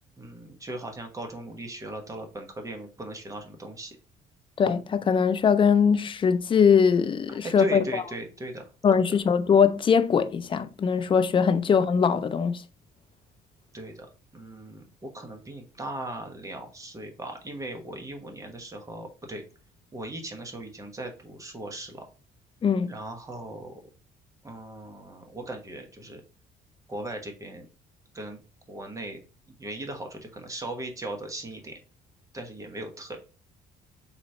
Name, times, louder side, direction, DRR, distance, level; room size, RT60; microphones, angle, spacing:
voice 1, 0.2-4.0 7.3-8.7 8.9-9.2 13.7-14.1 14.3-19.4 19.9-22.0 22.9-23.8 24.4-26.2 26.9-27.7 28.1-28.4 28.7-31.8 32.3-33.2, right 1 dB, 20° right, 1.1 m, -38 dB
voice 2, 4.6-7.8 8.8-12.6 22.6-22.9, left 6 dB, 30° left, 0.5 m, -21 dB
4.0 x 3.0 x 4.3 m
cardioid pair, 110°, 17 cm